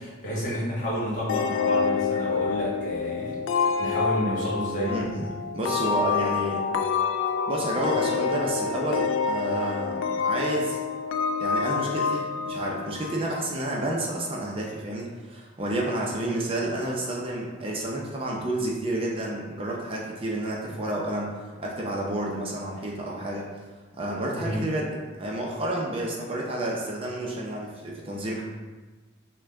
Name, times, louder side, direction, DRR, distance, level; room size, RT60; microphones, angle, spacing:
voice 1, 0.0-5.0 24.3-24.7, equal, 45° left, -6 dB, 1.3 m, -30 dB
sound 1, 1.3-13.7, left 5 dB, 85° left, 0.3 m, -27 dB
voice 2, 4.9-6.6 7.5-10.8 11.4-23.5 24.0-28.4, right 1 dB, 30° right, -2 dB, 0.6 m, -30 dB
6.2 x 2.2 x 3.4 m, 1.3 s
head